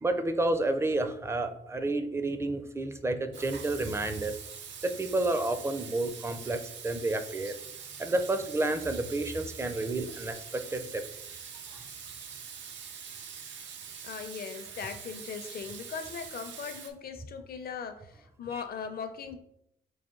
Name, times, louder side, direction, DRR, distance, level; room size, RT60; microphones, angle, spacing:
voice 1, 0.0-4.4 4.8-7.6 8.0-11.0 18.5-18.6, right 2 dB, 15° right, 8 dB, 0.4 m, -30 dB
Water tap faucet / Sink (filling or washing), 3.3-16.9, right 7 dB, 80° right, 0.5 m, -44 dB
voice 2, 14.0-19.4, left 6 dB, 55° left, 8 dB, 0.6 m, -39 dB
4.9 x 2.2 x 3.7 m, 0.75 s
cardioid pair, 85°, 18 cm